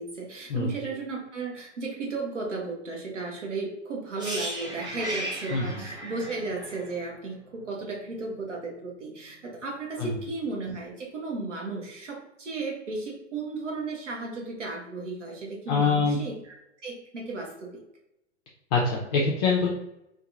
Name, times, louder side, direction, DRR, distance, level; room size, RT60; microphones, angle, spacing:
voice 1, 0.0-16.5 16.8-17.8, right 3 dB, 75° right, -1 dB, 1.0 m, -34 dB
sound 1, 4.2-8.1 8.3-8.5, right 1 dB, 10° right, 0.7 m, -36 dB
voice 2, 15.7-16.2 18.7-19.7, left 4 dB, 35° left, -3 dB, 0.5 m, -24 dB
2.7 x 2.5 x 2.5 m, 0.84 s
figure-of-eight pair, 100°, 36 cm